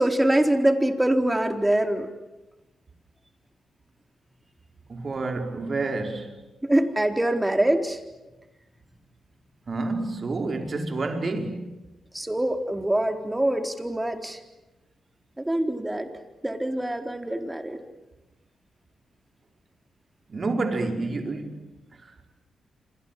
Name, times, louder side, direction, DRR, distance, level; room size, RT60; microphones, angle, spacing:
voice 1, 0.0-2.1 6.6-8.0 12.1-14.4 15.4-16.1 16.4-17.8, right 1 dB, 15° right, 4.1 m, -24 dB
voice 2, 4.9-6.3 9.7-11.7 20.3-21.6, right 3 dB, 45° right, 5.0 m, -29 dB
29.0 x 26.5 x 7.6 m
hypercardioid pair, 40°, 0 cm